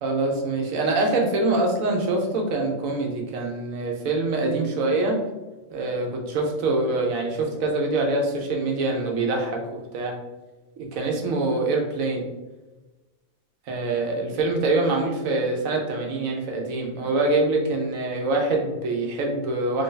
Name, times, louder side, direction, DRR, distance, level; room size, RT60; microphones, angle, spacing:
voice 1, 0.0-5.1 5.7-10.2 10.8-12.3 13.7-19.8, right 2 dB, 90° right, 1 dB, 1.2 m, -24 dB
3.2 x 2.6 x 3.8 m, 1.1 s
omnidirectional pair, 1.4 m